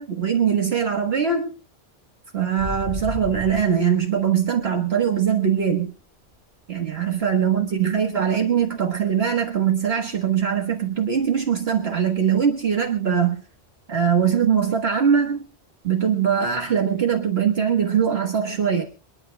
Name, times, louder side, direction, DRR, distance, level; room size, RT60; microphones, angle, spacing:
voice 1, 0.0-1.5 2.3-5.9 6.7-13.4 13.9-15.5 15.8-18.8, right 7 dB, 65° right, 3 dB, 1.5 m, -21 dB
sound 1, 2.6-5.9 6.2-8.5 8.8-9.1 9.4-11.4 11.7-11.8 12.1-12.5 12.8-12.9 15.1-15.2, left 2 dB, 15° right, 7.7 m, -37 dB
28.0 x 11.0 x 2.2 m, 0.36 s
omnidirectional pair, 1.1 m